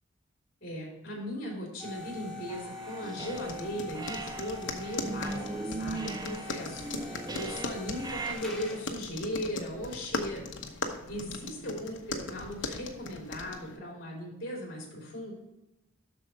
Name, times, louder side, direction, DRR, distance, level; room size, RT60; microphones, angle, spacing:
voice 1, 0.6-15.3, equal, 50° left, -2 dB, 3.0 m, -38 dB
sound 1, 1.8-9.0, left 2 dB, 5° left, 1.8 m, -44 dB
sound 2, 2.5-3.7 3.9-8.3, right 3 dB, 20° right, 0.5 m, -39 dB
sound 3, 3.3-13.8, left 3 dB, 65° left, 0.9 m, -39 dB
7.8 x 6.2 x 4.1 m, 0.97 s
head